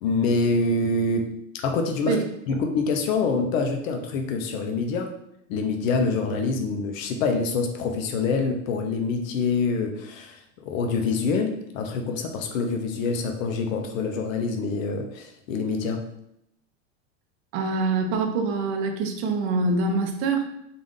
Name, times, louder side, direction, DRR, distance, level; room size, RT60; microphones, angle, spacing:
voice 1, 0.0-1.3 1.5-2.2 2.5-5.1 5.5-16.0, left 4 dB, 85° left, 4 dB, 0.7 m, -26 dB
voice 2, 17.5-20.5, right 3 dB, 35° right, 3 dB, 0.6 m, -25 dB
3.8 x 2.5 x 3.6 m, 0.78 s
supercardioid pair, 160°, 38 cm